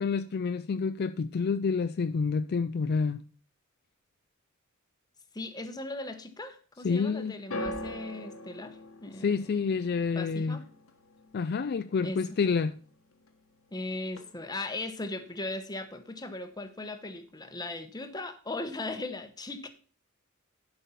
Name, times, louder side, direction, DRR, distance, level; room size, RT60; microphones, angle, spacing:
voice 1, 0.0-3.2 6.8-7.3 9.2-10.6 11.3-12.7, left 5 dB, 50° left, 0.4 m, -28 dB
voice 2, 5.3-10.6 12.0-12.2 13.7-19.7, left 2 dB, 20° left, 1.0 m, -38 dB
sound 1, 7.5-13.8 14.0-14.7 15.4-15.5, left 1 dB, 80° left, 1.3 m, -43 dB
11.0 x 5.5 x 5.6 m
head